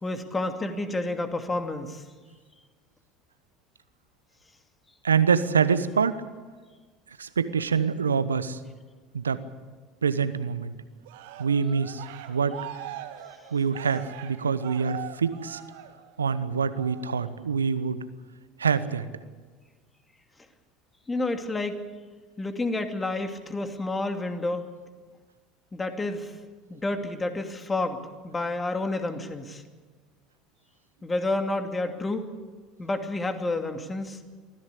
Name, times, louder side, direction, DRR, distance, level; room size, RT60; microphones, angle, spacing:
voice 1, 0.0-2.0 21.1-21.8 22.4-24.6 25.7-26.3 26.7-29.6 31.0-32.3 32.8-34.2, left 2 dB, 20° left, 6 dB, 2.6 m, -30 dB
voice 2, 5.0-6.2 7.2-8.6 9.1-9.4 10.0-10.7 11.4-12.6 13.5-15.6 16.2-18.0 18.6-19.1, right 6 dB, 85° right, 14 dB, 1.0 m, -25 dB
Cheering, 11.0-16.3 16.7-17.1, right 13 dB, 70° right, 1.9 m, -42 dB
24.0 x 15.5 x 8.5 m, 1.4 s
figure-of-eight pair, 70°, 0 cm